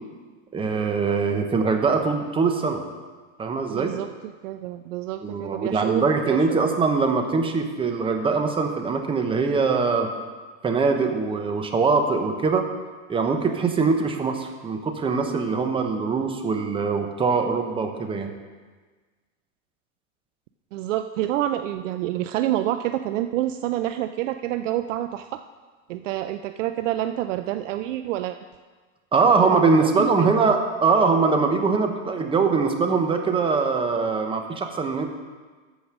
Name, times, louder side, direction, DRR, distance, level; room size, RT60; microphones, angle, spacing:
voice 1, 0.5-2.8 3.4-4.0 5.2-10.1 10.6-12.7 13.1-18.3 29.1-35.1, right 4 dB, 15° right, 5 dB, 0.9 m, -22 dB
voice 2, 3.7-6.7 20.7-25.4 25.9-28.4 29.5-30.5, right 13 dB, 65° right, 9 dB, 0.6 m, -28 dB
14.0 x 5.2 x 6.3 m, 1.4 s
supercardioid pair, 140°, 41 cm